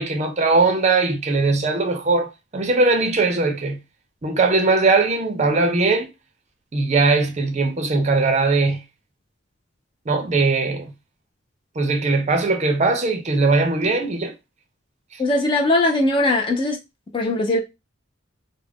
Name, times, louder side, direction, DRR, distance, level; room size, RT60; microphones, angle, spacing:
voice 1, 0.0-3.8 4.2-6.1 6.7-8.8 10.1-10.9 11.8-14.3 15.1-15.2, right 3 dB, 35° right, 0.5 m, -20 dB
voice 2, 15.2-16.8 17.1-17.6, left 2 dB, 25° left, 0.4 m, -20 dB
2.4 x 2.0 x 3.3 m
head